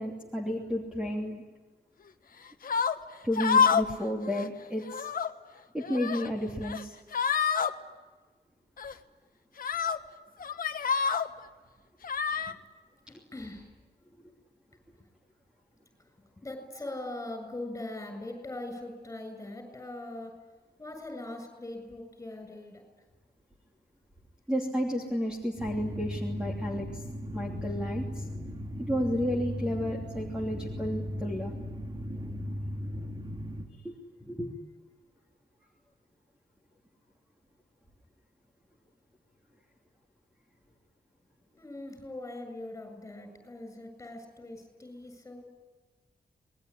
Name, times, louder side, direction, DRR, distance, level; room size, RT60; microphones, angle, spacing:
voice 1, 0.0-1.4 3.2-5.1 5.7-6.9 24.5-28.3 28.9-31.5 33.8-34.0 34.2-34.5, equal, 5° right, 0 dB, 3.0 m, -32 dB
sound 1, 2.6-3.0 3.4-3.9 4.2-4.5 4.8-5.3 5.8-6.3 6.6-6.8 7.1-7.7 8.8-8.9 9.6-10.0 10.4-11.3 12.0-12.5, left 6 dB, 55° left, 1.3 m, -27 dB
voice 2, 13.1-13.8 16.4-20.3 20.8-22.8 41.6-45.4, left 2 dB, 15° left, 6 dB, 7.5 m, -41 dB
sound 2, 25.6-33.6, left 1 dB, 25° right, 3.0 m, -37 dB
27.5 x 21.0 x 10.0 m, 1.2 s
wide cardioid pair, 180°, 17 cm